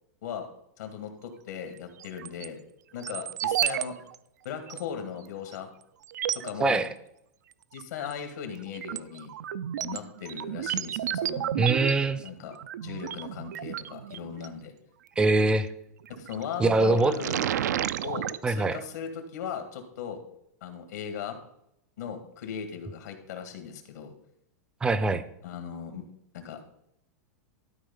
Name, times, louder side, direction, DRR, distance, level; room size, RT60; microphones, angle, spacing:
voice 1, 0.8-2.6 2.9-4.0 4.4-5.7 6.3-6.9 7.7-9.3 9.8-11.6 12.2-12.6 12.8-14.7 16.1-17.5 18.0-20.2 20.6-21.4 22.0-24.1 25.4-26.1 26.3-26.6, left 7 dB, 75° left, 6 dB, 1.9 m, -38 dB
sound 1, 2.0-2.5 3.0-3.9 4.1-4.2 4.7-4.8 5.5-5.6 6.0-6.5 7.8-8.1 8.5-14.5 16.1-16.4 16.8-18.4, right 11 dB, 85° right, 0.4 m, -32 dB
voice 2, 11.6-12.2 15.2-15.7 16.6-17.1 18.4-18.8 24.8-25.2, right 3 dB, 10° right, 14 dB, 0.5 m, -23 dB
12.5 x 4.3 x 5.5 m, 0.78 s
supercardioid pair, 150°, 9 cm